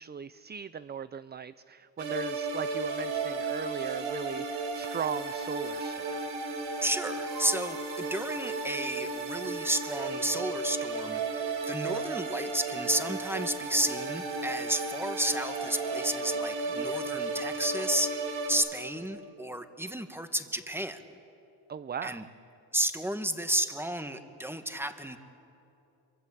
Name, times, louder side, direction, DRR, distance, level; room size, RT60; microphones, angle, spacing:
voice 1, 0.0-6.2 21.7-22.3, right 7 dB, 25° right, 15 dB, 0.5 m, -38 dB
sound 1, 2.0-18.5, right 3 dB, 90° right, 4.8 m, -34 dB
voice 2, 6.8-21.0 22.0-22.3 22.7-25.2, right 1 dB, 5° right, 8 dB, 1.8 m, -32 dB
25.0 x 23.5 x 8.6 m, 2.8 s
cardioid pair, 85°, 44 cm